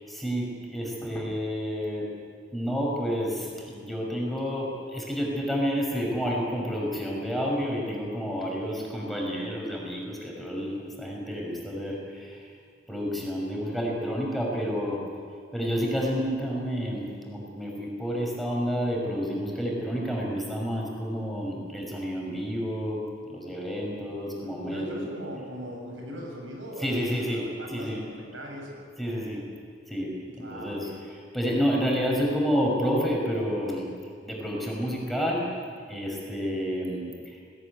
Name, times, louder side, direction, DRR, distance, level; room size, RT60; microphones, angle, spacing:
voice 1, 0.1-2.0 2.5-10.7 11.0-12.5 12.9-15.0 15.5-23.0 23.3-25.0 26.8-27.4 27.7-28.0 29.0-29.4 29.9-30.1 30.4-33.9 34.2-35.5 35.9-37.4, equal, ahead, -2 dB, 6.0 m, -29 dB
voice 2, 24.4-27.3 27.6-28.8 30.4-31.0, equal, 85° right, 0 dB, 7.6 m, -40 dB
21.0 x 19.0 x 9.9 m, 2.2 s
head